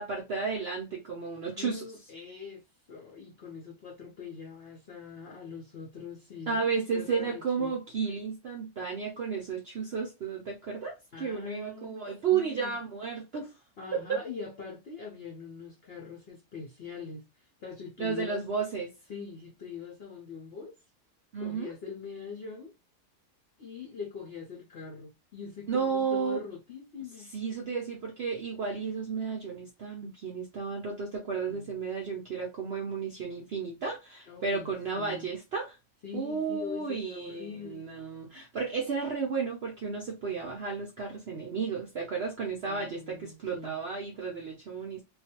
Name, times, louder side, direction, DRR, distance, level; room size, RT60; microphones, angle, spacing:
voice 1, 0.0-1.8 6.5-13.5 14.1-14.2 18.0-18.9 21.3-21.7 25.7-26.4 27.2-35.8 36.1-45.0, right 5 dB, 65° right, 0.6 m, -33 dB
voice 2, 1.5-7.7 11.1-12.7 13.8-18.4 19.1-20.7 21.4-22.7 23.6-27.3 31.5-31.7 34.3-35.3 36.0-37.9 42.6-43.8, left 5 dB, 60° left, 0.6 m, -43 dB
2.5 x 2.3 x 2.7 m
omnidirectional pair, 1.7 m